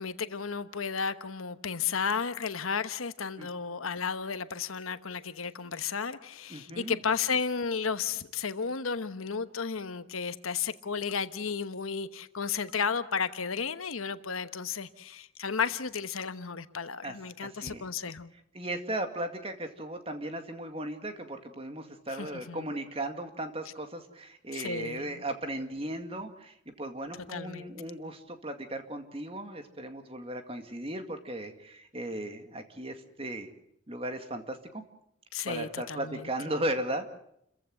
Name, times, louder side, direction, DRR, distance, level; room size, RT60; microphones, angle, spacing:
voice 1, 0.0-18.3 22.2-22.7 24.5-25.2 27.3-27.7 35.3-36.3, left 6 dB, 90° left, 12 dB, 1.1 m, -33 dB
voice 2, 6.5-7.0 17.0-17.9 18.5-33.5 33.9-34.8 35.5-37.1, right 1 dB, 30° right, 7 dB, 2.1 m, -36 dB
29.0 x 15.5 x 7.8 m, 0.74 s
head